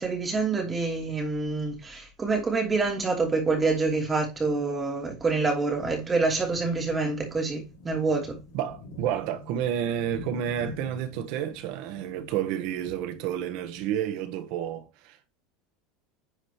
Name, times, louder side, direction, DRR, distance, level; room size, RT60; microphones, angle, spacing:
voice 1, 0.0-8.4, right 3 dB, 15° right, 3.0 m, -27 dB
sound 1, 5.4-13.9, left 2 dB, 85° left, 4.1 m, -47 dB
voice 2, 8.5-15.2, right 10 dB, 60° right, 1.3 m, -30 dB
10.5 x 5.0 x 3.0 m
supercardioid pair, 155°, 0 cm